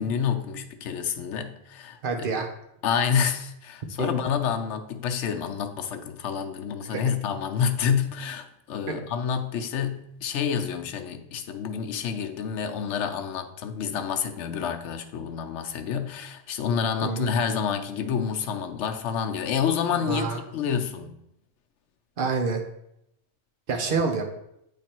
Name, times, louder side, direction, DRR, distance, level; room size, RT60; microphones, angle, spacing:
voice 1, 0.0-2.0 2.8-21.2, left 7 dB, 75° left, 1.0 m, -28 dB
voice 2, 2.0-2.5 4.0-4.1 6.9-7.0 17.0-17.3 20.1-20.4 22.2-22.6 23.7-24.2, right 4 dB, 50° right, 1.0 m, -27 dB
8.3 x 3.3 x 4.3 m
omnidirectional pair, 1.2 m